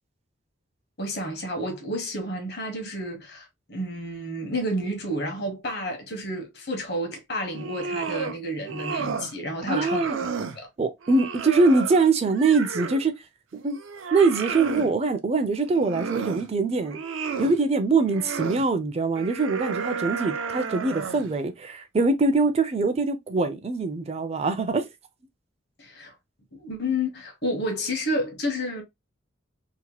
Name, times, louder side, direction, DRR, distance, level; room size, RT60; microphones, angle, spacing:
voice 1, 1.0-10.0 10.5-10.7 25.8-26.1 26.5-28.8, equal, 55° left, 1.0 m, -30 dB
sound 1, 7.5-8.4 8.6-9.3 9.7-10.6 11.0-13.1 13.5-14.9 15.6-16.5 16.8-17.6 18.1-18.6 19.2-21.3, right 5 dB, 90° right, 0.5 m, -32 dB
voice 2, 9.6-10.2 10.8-13.1 13.6-13.8 14.1-17.0 17.4-24.9, right 3 dB, 30° right, 0.4 m, -23 dB
2.9 x 2.1 x 2.8 m
head